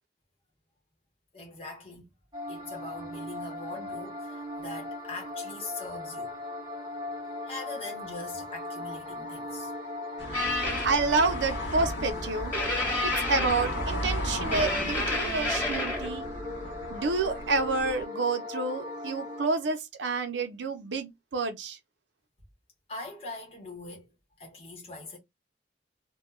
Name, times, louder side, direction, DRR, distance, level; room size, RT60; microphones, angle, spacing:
voice 1, 1.3-2.1 2.5-6.3 7.5-9.7 22.9-24.1 24.4-25.2, left 2 dB, 35° left, 0.8 m, -42 dB
sound 1, 2.3-19.5, left 2 dB, 25° right, 0.6 m, -39 dB
sound 2, 10.2-18.0, equal, 80° left, 0.9 m, -36 dB
sound 3, 10.3-10.9 12.5-14.0 14.5-16.1, left 2 dB, 10° left, 1.1 m, -30 dB
voice 2, 10.8-12.5 13.3-16.3 16.9-21.8, right 3 dB, 90° right, 0.6 m, -29 dB
2.2 x 2.1 x 3.0 m
head